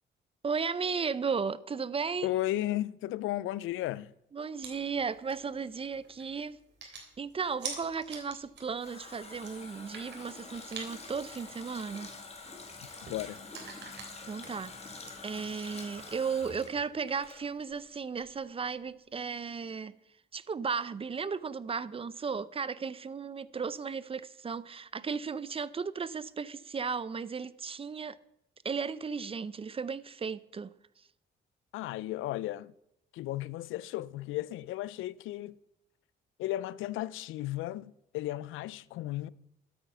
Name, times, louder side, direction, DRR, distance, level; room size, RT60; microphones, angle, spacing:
voice 1, 0.4-2.3 4.3-12.1 14.3-19.9 20.3-28.2 28.6-30.7, right 5 dB, 30° right, 0.6 m, -35 dB
voice 2, 2.2-4.1 13.1-13.4 31.7-32.7 33.1-35.6 36.4-39.3, left 15 dB, 85° left, 0.5 m, -34 dB
sound 1, 4.6-16.4, right 5 dB, 60° right, 3.3 m, -49 dB
Water tap faucet, 8.3-17.9 18.2-18.3, left 3 dB, 30° left, 2.3 m, -47 dB
12.5 x 8.7 x 5.6 m
cardioid pair, 90°, 20 cm